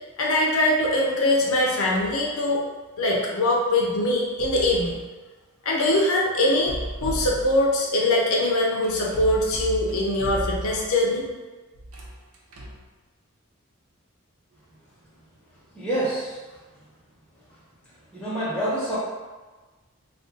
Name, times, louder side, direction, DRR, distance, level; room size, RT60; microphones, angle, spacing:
voice 1, 0.2-2.6 3.0-5.0 5.6-11.3, left 1 dB, 75° left, -2 dB, 0.5 m, -22 dB
sound 1, 1.9-2.3 4.2-5.1 6.5-7.8 8.8-11.0 11.7-12.9, equal, 85° right, 0.6 m, -35 dB
voice 2, 15.7-16.6 18.1-19.0, right 1 dB, 5° left, -10 dB, 1.0 m, -27 dB
2.5 x 2.3 x 3.7 m, 1.3 s
head